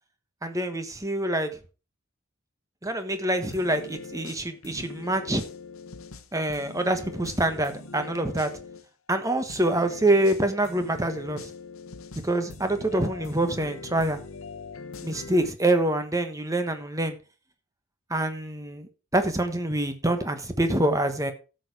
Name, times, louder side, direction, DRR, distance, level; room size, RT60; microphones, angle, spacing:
voice 1, 0.4-1.5 2.8-5.4 6.3-8.5 9.1-11.5 12.2-14.2 15.0-17.2 18.1-21.3, right 1 dB, 15° right, 1.3 m, -26 dB
sound 1, 3.5-8.8 9.5-15.5, left 4 dB, 80° left, 1.0 m, -42 dB
13.0 x 6.7 x 4.8 m
head